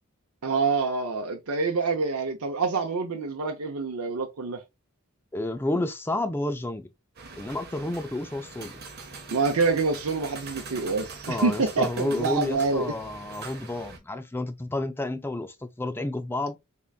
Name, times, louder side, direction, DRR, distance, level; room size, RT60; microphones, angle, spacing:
voice 1, 0.4-4.6 9.3-12.8, right 4 dB, 85° right, 0.6 m, -26 dB
voice 2, 5.3-6.9 7.4-8.7 11.3-16.6, left 2 dB, 10° left, 0.3 m, -30 dB
sound 1, 7.1-14.0, right 4 dB, 45° right, 0.9 m, -42 dB
3.7 x 3.4 x 2.3 m
head